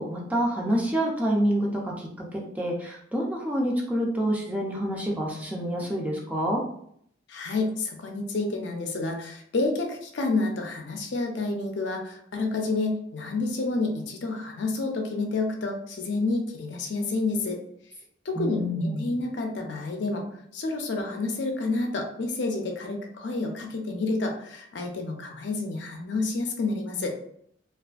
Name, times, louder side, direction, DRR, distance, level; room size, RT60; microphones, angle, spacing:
voice 1, 0.0-6.6 18.3-19.2, equal, 10° right, -2 dB, 0.4 m, -27 dB
voice 2, 7.3-17.6 18.3-20.2 20.5-27.1, left 3 dB, 65° left, 2 dB, 0.5 m, -29 dB
2.5 x 2.4 x 2.3 m, 0.66 s
head